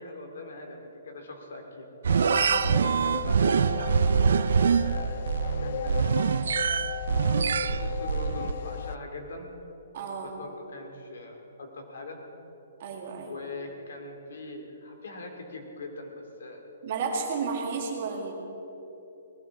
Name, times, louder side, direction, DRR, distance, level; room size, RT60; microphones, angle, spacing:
voice 1, 0.0-1.9 2.2-4.0 4.7-5.3 5.6-6.2 7.5-9.5 10.2-12.2 13.2-16.1 16.4-16.6, left 2 dB, 65° left, 2 dB, 2.7 m, -42 dB
sound 1, 2.0-8.5, right 6 dB, 60° right, 0.3 m, -25 dB
sound 2, 2.1-9.0, left 7 dB, 40° left, 0.4 m, -35 dB
voice 2, 9.9-10.3 12.8-13.4 16.8-18.3, right 5 dB, 35° right, 0 dB, 2.0 m, -32 dB
19.0 x 15.0 x 4.8 m, 3.0 s
hypercardioid pair, 180°, 0 cm